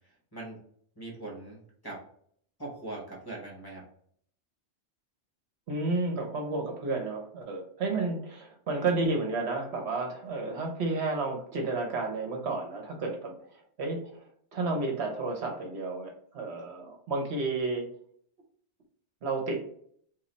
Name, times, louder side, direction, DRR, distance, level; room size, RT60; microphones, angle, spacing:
voice 1, 1.0-2.0 2.6-3.8, right 2 dB, 20° left, -3 dB, 0.9 m, -41 dB
voice 2, 5.7-14.2 14.5-17.9 19.2-19.6, right 3 dB, 70° right, 2 dB, 1.0 m, -31 dB
3.1 x 2.4 x 4.0 m, 0.62 s
omnidirectional pair, 1.2 m